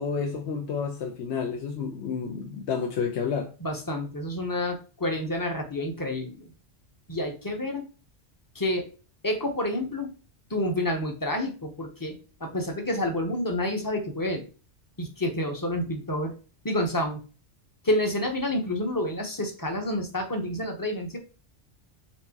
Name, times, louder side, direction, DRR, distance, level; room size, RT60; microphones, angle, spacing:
voice 1, 0.0-3.5, left 6 dB, 70° left, 0.9 m, -30 dB
voice 2, 3.6-6.4 7.1-7.9 8.5-8.8 9.2-10.1 10.5-12.2 12.4-14.4 15.0-16.3 16.6-17.2 17.8-21.2, left 1 dB, 20° left, 0.7 m, -29 dB
4.4 x 3.7 x 2.8 m
omnidirectional pair, 1.2 m